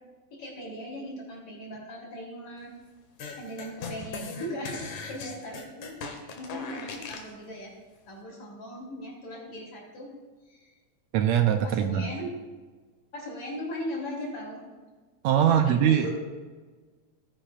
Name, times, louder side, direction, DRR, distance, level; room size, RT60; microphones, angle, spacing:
voice 1, 0.4-2.7 3.4-6.0 6.2-7.7 8.1-10.1 10.5-10.7 11.6-12.3 13.1-14.6 15.4-16.1, equal, 50° left, -3 dB, 4.0 m, -38 dB
sound 1, 3.2-7.3, left 4 dB, 75° left, 2.6 m, -39 dB
voice 2, 11.1-12.1 15.2-16.1, right 9 dB, 80° right, 7 dB, 1.8 m, -22 dB
17.5 x 10.0 x 2.4 m, 1.4 s
omnidirectional pair, 3.4 m